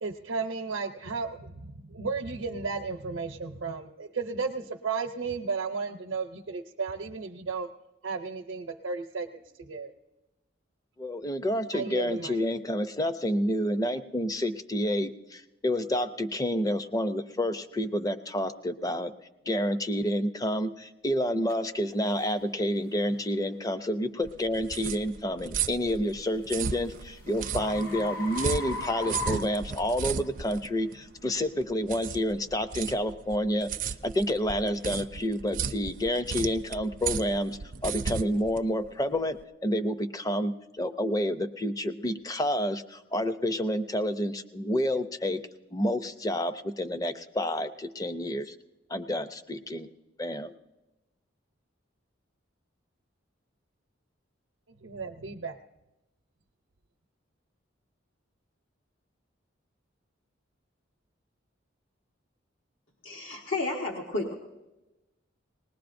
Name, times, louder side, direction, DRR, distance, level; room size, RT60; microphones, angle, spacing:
voice 1, 0.0-7.7 8.0-9.9 11.7-12.4 54.8-55.6, right 4 dB, 85° right, 2 dB, 0.7 m, -34 dB
voice 2, 11.0-19.1 19.5-45.4 45.7-48.5 48.9-49.9 50.2-50.5, equal, 20° left, 10 dB, 0.5 m, -29 dB
sound 1, 21.5-21.6 22.2-22.4 23.0-23.2 25.8-30.3, left 3 dB, 50° left, 1.2 m, -38 dB
sound 2, 24.2-39.4, right 6 dB, 45° right, 0.4 m, -35 dB
voice 3, 63.0-64.4, left 2 dB, 75° left, -1 dB, 1.3 m, -32 dB
20.5 x 19.0 x 2.6 m, 1.0 s
head